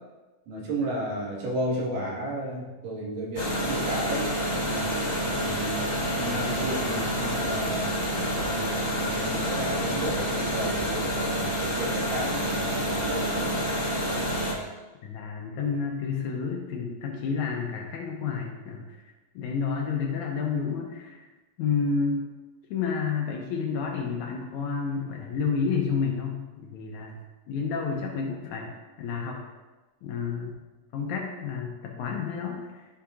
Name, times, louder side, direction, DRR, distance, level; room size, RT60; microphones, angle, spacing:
voice 1, 0.5-4.3 4.6-5.8 6.2-7.9 8.3-13.5, right 1 dB, 80° right, -4 dB, 3.2 m, -33 dB
sound 1, 3.3-14.5, equal, 50° left, 0.7 m, -28 dB
voice 2, 15.0-19.0 19.4-21.2 21.6-22.2 22.7-27.2 27.5-29.4 30.0-30.6 30.9-32.9, left 5 dB, 75° left, 0 dB, 1.9 m, -30 dB
11.5 x 5.6 x 2.4 m, 1.2 s
omnidirectional pair, 3.9 m